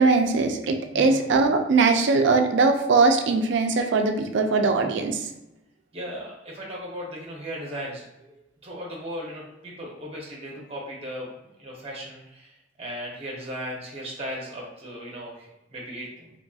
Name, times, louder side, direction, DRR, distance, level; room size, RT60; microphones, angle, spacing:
voice 1, 0.0-5.3, right 4 dB, 65° right, 5 dB, 0.3 m, -21 dB
voice 2, 5.9-11.3 11.6-16.3, equal, 30° right, -2 dB, 0.7 m, -37 dB
3.0 x 2.6 x 2.3 m, 0.93 s
head